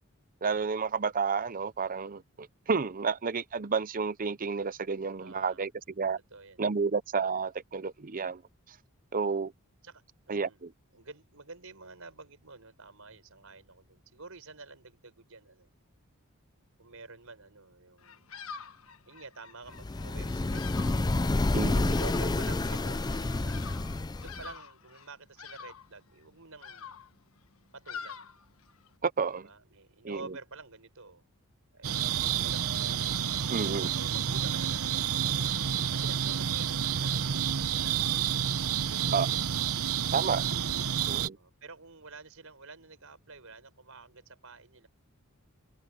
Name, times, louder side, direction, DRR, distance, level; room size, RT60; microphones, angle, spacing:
voice 1, 0.4-2.2 2.7-5.7 6.0-6.2 6.6-8.4 9.1-9.5 10.3-10.7 21.5-21.9 29.0-29.5 30.0-30.2 33.5-33.9 39.1-39.3 40.1-40.4 41.1-41.4, right 5 dB, 40° right, 0.7 m, -30 dB
voice 2, 5.2-5.6 6.3-6.6 9.8-10.6 10.9-15.7 16.8-18.3 19.1-21.3 21.7-23.7 24.2-27.0 27.7-28.3 29.4-31.2 31.7-32.9 33.7-35.6 35.9-38.1 38.8-39.5 40.3-40.5 41.4-44.9, right 3 dB, 75° right, 5.8 m, -49 dB
Bird vocalization bird call bird song, 18.0-29.0, left 6 dB, 75° left, 1.3 m, -47 dB
sound 1, 19.8-24.5, left 2 dB, 20° left, 0.4 m, -29 dB
sound 2, 31.8-41.3, right 8 dB, 90° right, 0.9 m, -29 dB
head